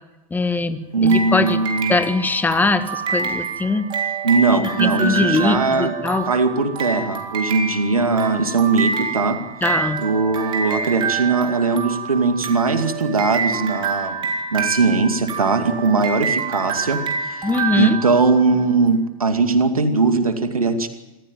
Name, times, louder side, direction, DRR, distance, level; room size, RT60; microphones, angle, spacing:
voice 1, 0.3-1.6 1.9-3.9 4.8-6.3 9.6-10.0 17.4-18.0, left 3 dB, 10° left, 12 dB, 1.5 m, -21 dB
voice 2, 0.9-1.9 4.2-6.0 6.2-9.4 10.0-14.2 14.5-17.5 17.8-20.9, right 4 dB, 80° right, 8 dB, 2.3 m, -19 dB
sound 1, 1.1-18.7, right 5 dB, 25° right, 3.7 m, -27 dB
26.0 x 15.0 x 9.1 m, 1.0 s
figure-of-eight pair, 95°, 18 cm